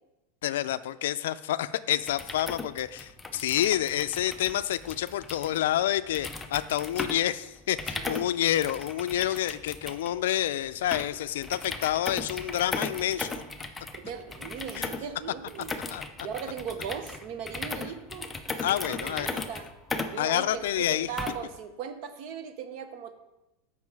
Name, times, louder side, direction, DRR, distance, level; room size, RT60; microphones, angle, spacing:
voice 1, 0.4-13.4 14.8-14.9 15.9-16.0 18.6-19.4 20.2-21.1, left 12 dB, 85° left, 14 dB, 0.3 m, -28 dB
sound 1, 2.0-21.6, left 3 dB, 5° left, 0.4 m, -38 dB
voice 2, 13.9-15.7 16.2-18.3 18.6-19.7 20.1-23.1, right 7 dB, 40° right, 9 dB, 0.7 m, -38 dB
7.5 x 5.5 x 4.6 m, 0.95 s
supercardioid pair, 175°, 0 cm